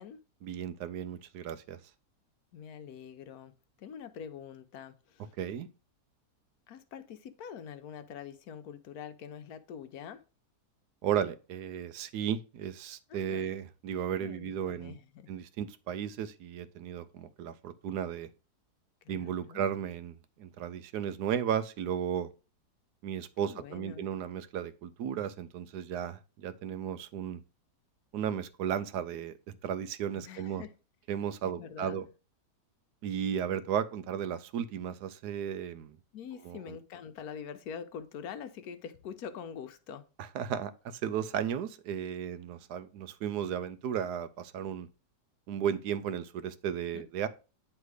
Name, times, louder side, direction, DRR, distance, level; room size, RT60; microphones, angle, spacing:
voice 1, 0.4-1.8 5.4-5.7 11.0-15.0 15.3-18.3 19.1-22.3 23.0-27.4 28.1-30.6 31.1-32.0 33.0-36.0 36.4-36.7 40.3-44.9 45.5-47.3, right 9 dB, 75° right, 1.2 m, -34 dB
voice 2, 2.5-3.5 3.8-5.4 6.7-10.2 13.1-13.5 14.2-15.3 19.0-19.7 23.4-24.1 30.1-30.7 31.4-32.1 36.1-40.1 46.7-47.1, left 7 dB, 70° left, 1.1 m, -45 dB
9.7 x 3.3 x 4.8 m
omnidirectional pair, 1.8 m